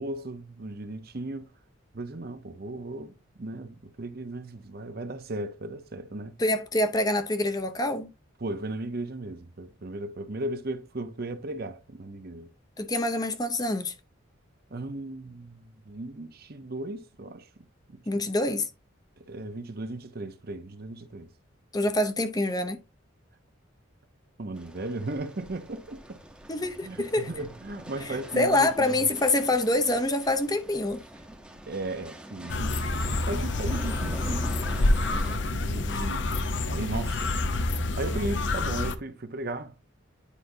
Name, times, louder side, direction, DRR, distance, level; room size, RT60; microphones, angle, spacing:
voice 1, 0.0-1.5 1.9-6.4 8.4-12.5 14.7-17.5 17.9-18.2 19.2-21.3 21.8-21.9 24.4-26.2 26.8-29.0 31.7-34.5 35.1-37.4 37.9-39.7, right 2 dB, 50° right, 0.8 m, -36 dB
voice 2, 6.4-8.1 12.8-13.9 18.1-18.7 21.7-22.8 26.5-27.3 28.1-31.0 35.9-36.0, left 1 dB, 20° left, 0.7 m, -26 dB
sound 1, 24.5-35.4, right 1 dB, 5° right, 0.9 m, -45 dB
sound 2, 32.5-39.0, left 2 dB, 60° left, 0.8 m, -27 dB
9.9 x 5.0 x 2.7 m
head